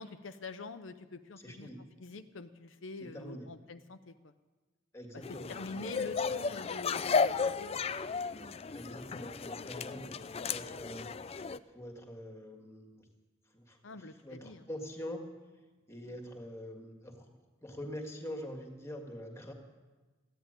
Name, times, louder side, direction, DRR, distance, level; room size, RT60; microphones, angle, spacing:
voice 1, 0.0-1.7 2.0-4.3 5.5-7.8 13.8-14.6, left 3 dB, 75° left, 9 dB, 0.7 m, -45 dB
voice 2, 1.4-1.8 3.0-3.5 4.9-6.5 8.7-11.1 11.7-13.1 13.5-15.3 15.9-19.5, equal, 15° left, 3 dB, 1.9 m, -45 dB
sound 1, 5.2-11.6, left 5 dB, 30° left, 0.4 m, -34 dB
15.0 x 10.5 x 9.0 m, 1.3 s
head